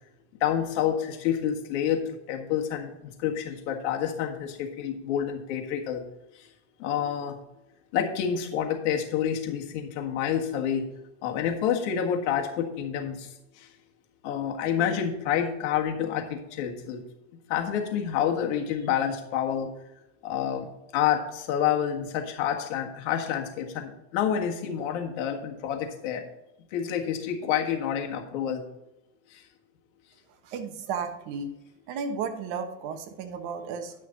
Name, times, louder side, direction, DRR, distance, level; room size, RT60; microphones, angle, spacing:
voice 1, 0.4-6.0 6.8-7.4 7.9-10.9 11.2-13.3 14.2-17.0 17.5-19.7 20.2-20.7 20.9-26.2 26.7-28.6, left 9 dB, 60° left, 2 dB, 1.7 m, -28 dB
voice 2, 30.4-31.5 31.9-33.9, right 5 dB, 55° right, 7 dB, 1.3 m, -33 dB
10.0 x 6.3 x 4.0 m, 0.89 s
supercardioid pair, 150°, 38 cm